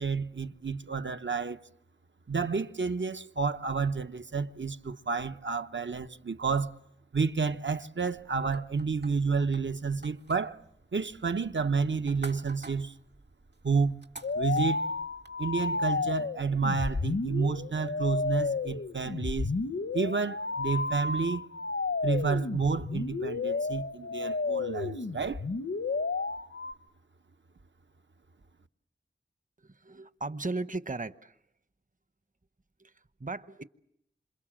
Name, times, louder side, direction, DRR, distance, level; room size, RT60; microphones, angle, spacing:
voice 1, 0.0-1.6 2.3-6.7 7.1-10.6 10.9-12.9 13.6-14.0 14.3-14.8 15.4-19.5 19.9-21.5 22.0-25.4, right 5 dB, 80° right, 1.1 m, -30 dB
sound 1, 8.0-15.4, right 2 dB, 65° right, 2.1 m, -51 dB
sound 2, 14.2-26.7, left 4 dB, 90° left, 1.1 m, -32 dB
voice 2, 29.6-31.4 32.8-32.9 33.2-33.6, right 3 dB, 45° right, 1.0 m, -36 dB
27.5 x 27.5 x 7.5 m
wide cardioid pair, 45°, 19 cm